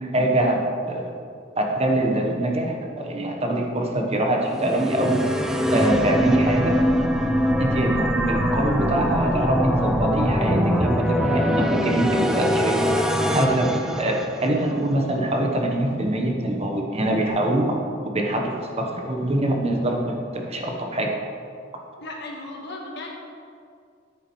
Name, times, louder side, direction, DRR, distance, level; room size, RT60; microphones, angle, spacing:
voice 1, 0.1-1.1 1.6-5.2 5.7-6.8 7.6-13.0 13.3-17.8 18.1-21.1, right 1 dB, 35° right, 1 dB, 0.9 m, -24 dB
sound 1, 4.5-14.7, equal, 5° right, 0.5 m, -23 dB
voice 2, 22.0-23.1, left 2 dB, 60° left, 0 dB, 1.4 m, -36 dB
10.0 x 8.3 x 3.1 m, 2.3 s
head